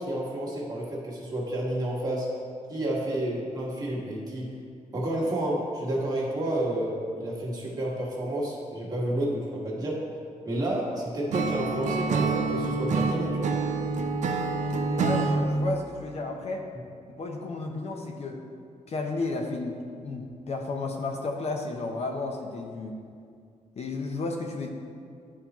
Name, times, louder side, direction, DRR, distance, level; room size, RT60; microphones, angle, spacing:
voice 1, 0.0-2.3 2.7-4.6 4.9-10.0 10.5-13.6, right 1 dB, 30° right, -5 dB, 1.7 m, -30 dB
Acoustic guitar / Strum, 11.3-15.4, right 4 dB, 65° right, 0.6 m, -27 dB
voice 2, 14.7-16.6 17.2-18.4 18.9-19.7 20.0-23.0 23.8-24.7, left 3 dB, 50° left, 2 dB, 0.7 m, -32 dB
11.0 x 4.2 x 3.0 m, 2.3 s
cardioid pair, 115°, 13 cm